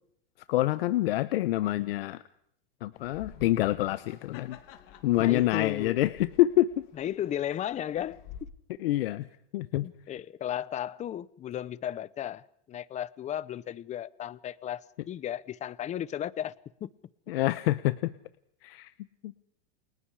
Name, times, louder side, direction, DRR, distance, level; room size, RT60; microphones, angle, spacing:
voice 1, 0.5-2.2 2.8-4.6 5.0-6.9 8.8-9.3 9.5-9.9 17.3-18.1 18.6-18.9 19.2-19.3, left 16 dB, 75° left, 1.2 m, -26 dB
sound 1, 2.9-8.4, left 8 dB, 45° left, 3.5 m, -51 dB
voice 2, 5.2-6.0 7.0-8.5 9.8-16.5 16.8-16.9, left 11 dB, 25° left, 0.9 m, -35 dB
30.0 x 27.0 x 5.0 m
supercardioid pair, 145°, 30 cm